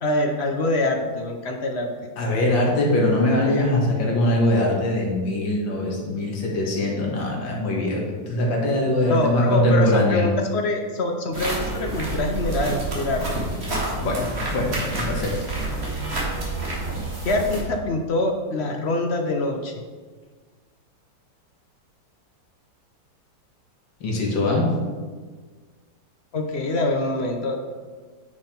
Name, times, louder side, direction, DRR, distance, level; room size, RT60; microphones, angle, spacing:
voice 1, 0.0-2.1 9.1-13.5 17.2-19.7 26.3-27.6, left 2 dB, 55° left, 3 dB, 0.7 m, -25 dB
voice 2, 2.2-10.2 13.9-15.3 24.0-24.7, left 1 dB, 75° left, -2 dB, 2.3 m, -22 dB
sound 1, 11.3-17.6, right 2 dB, 35° right, 2.2 m, -28 dB
9.3 x 5.6 x 4.4 m, 1.5 s
omnidirectional pair, 2.0 m